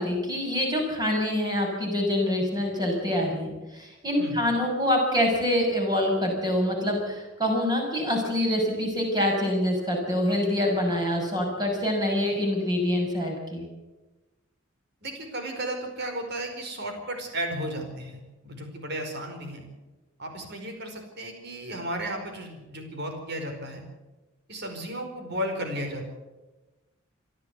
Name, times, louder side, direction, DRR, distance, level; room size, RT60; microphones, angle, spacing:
voice 1, 0.0-13.7, left 1 dB, 20° right, 1 dB, 6.4 m, -26 dB
voice 2, 15.0-19.6 20.2-23.8 24.5-26.1, right 1 dB, 55° right, 4 dB, 4.8 m, -34 dB
26.5 x 12.5 x 8.3 m, 1.1 s
head